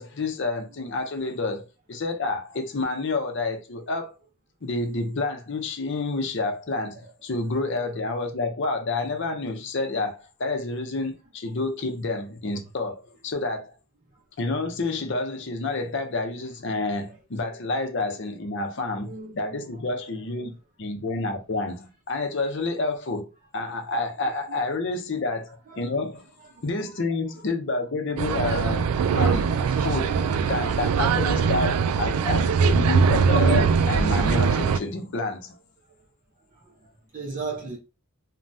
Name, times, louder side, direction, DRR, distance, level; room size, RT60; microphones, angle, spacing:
voice 1, 0.0-4.2 4.6-13.7 14.4-23.3 23.5-26.2 26.6-30.2 30.5-35.5, left 3 dB, 55° left, 0.6 m, -29 dB
voice 2, 19.0-19.5 23.8-23.9 24.2-24.6 25.7-25.9 26.4-26.6 26.9-27.0 29.4-29.5 29.7-29.8 30.2-30.5 36.5-36.9 37.1-37.8, right 4 dB, 35° right, 0.6 m, -38 dB
sound 1, 28.2-34.8, right 5 dB, 80° right, 0.3 m, -21 dB
3.3 x 2.2 x 2.6 m
head